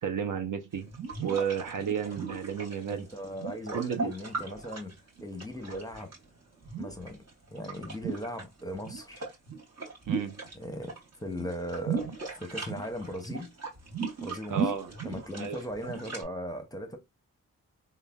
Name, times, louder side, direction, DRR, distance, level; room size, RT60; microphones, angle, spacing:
voice 1, 0.0-0.9 1.2-3.1 3.7-4.1 10.1-10.4 14.5-14.9 15.4-15.6, right 7 dB, 65° right, 0.5 m, -32 dB
sound 1, 0.7-6.2 6.6-8.4 8.7-11.0 11.2-16.2, right 5 dB, 45° right, 1.1 m, -37 dB
voice 2, 2.9-6.1 6.8-7.2 7.5-9.3 10.5-10.9 11.2-13.5 14.2-14.7 15.0-17.0, equal, 10° left, 0.8 m, -38 dB
3.2 x 2.2 x 2.2 m
cardioid pair, 50°, 34 cm